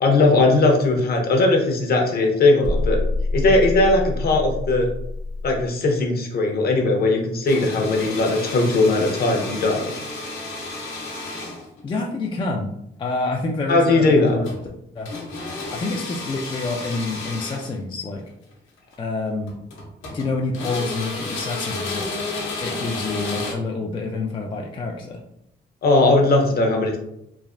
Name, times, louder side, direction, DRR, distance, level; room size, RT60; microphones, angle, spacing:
voice 1, 0.0-3.0 3.3-4.9 5.4-9.9 13.7-14.4 25.8-27.0, left 2 dB, 50° left, 2 dB, 0.7 m, -18 dB
sound 1, 2.6-5.7, left 2 dB, 85° right, 1.0 m, -26 dB
sound 2, 7.5-11.8 14.1-14.6 15.1-17.7 18.8-18.9 19.5-20.3 20.5-23.5, left 3 dB, 80° left, 0.9 m, -32 dB
voice 2, 11.8-14.5 14.9-15.1 15.7-18.2 19.0-19.5 20.1-22.1 22.6-25.2, left 3 dB, 25° left, 0 dB, 0.4 m, -27 dB
3.2 x 2.1 x 2.4 m, 0.78 s
cardioid pair, 90°, 20 cm